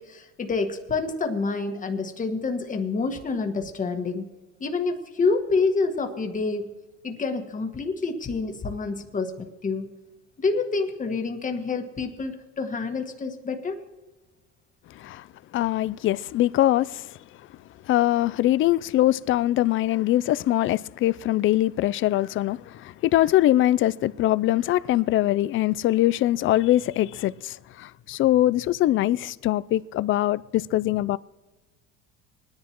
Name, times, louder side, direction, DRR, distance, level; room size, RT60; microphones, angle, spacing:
voice 1, 0.0-4.3 4.6-6.7 7.0-9.9 10.4-13.8, left 4 dB, 25° left, 1.6 m, -27 dB
voice 2, 14.9-15.3 15.5-17.2 17.8-31.2, left 14 dB, 40° left, 0.4 m, -22 dB
20.5 x 10.5 x 3.0 m
supercardioid pair, 105°, 32 cm